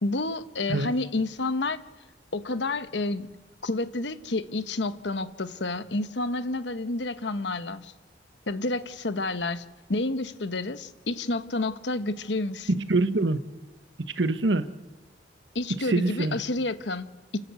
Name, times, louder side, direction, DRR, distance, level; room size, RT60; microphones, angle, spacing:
voice 1, 0.0-1.8 2.3-3.3 3.6-7.9 8.5-12.7 15.5-17.4, left 2 dB, 70° left, 11 dB, 1.1 m, -30 dB
voice 2, 12.7-13.4 14.0-14.7 15.9-16.4, right 2 dB, 75° right, 11 dB, 1.1 m, -24 dB
29.5 x 13.0 x 8.3 m, 1.3 s
head